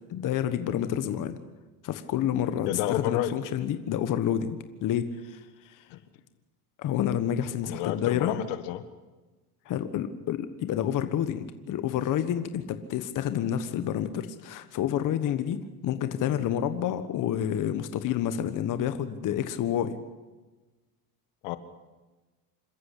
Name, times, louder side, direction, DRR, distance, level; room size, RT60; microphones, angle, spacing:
voice 1, 0.1-1.4 1.8-5.8 6.8-8.4 9.6-20.0, left 10 dB, 45° left, 10 dB, 1.5 m, -29 dB
voice 2, 2.7-3.3 5.9-6.0 7.6-8.8 21.4-21.6, left 13 dB, 75° left, 11 dB, 1.8 m, -30 dB
26.5 x 14.0 x 8.4 m, 1.2 s
cardioid pair, 125°, 42 cm